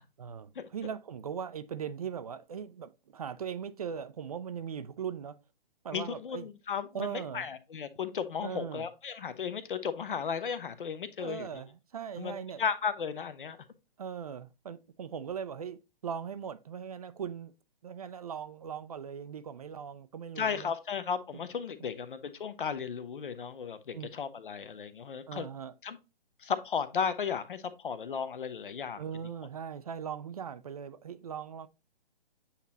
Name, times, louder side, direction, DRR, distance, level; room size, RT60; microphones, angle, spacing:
voice 1, 0.2-5.4 5.8-6.5 6.9-7.5 8.4-8.9 11.2-12.6 14.0-15.8 16.0-17.5 17.8-20.7 21.8-21.9 23.9-24.1 25.3-25.7 29.0-31.7, right 7 dB, 40° right, 0.4 m, -39 dB
voice 2, 5.9-11.5 12.2-13.6 20.4-25.5 25.8-26.0 26.4-29.0, left 6 dB, 60° left, 0.8 m, -35 dB
8.3 x 3.0 x 3.9 m
figure-of-eight pair, 130°, 30 cm